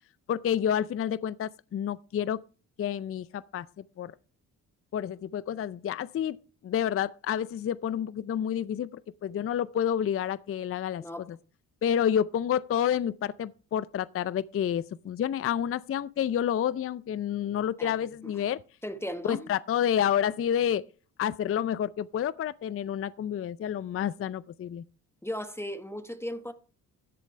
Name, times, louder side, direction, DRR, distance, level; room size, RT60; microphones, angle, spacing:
voice 1, 0.3-2.4 2.8-4.1 4.9-6.4 6.6-11.4 11.8-18.6 19.3-20.8 21.2-24.8, left 9 dB, 35° left, 0.5 m, -29 dB
voice 2, 18.8-19.5 25.2-26.5, equal, 5° left, 1.3 m, -36 dB
14.0 x 8.1 x 3.2 m
hypercardioid pair, 50°, 41 cm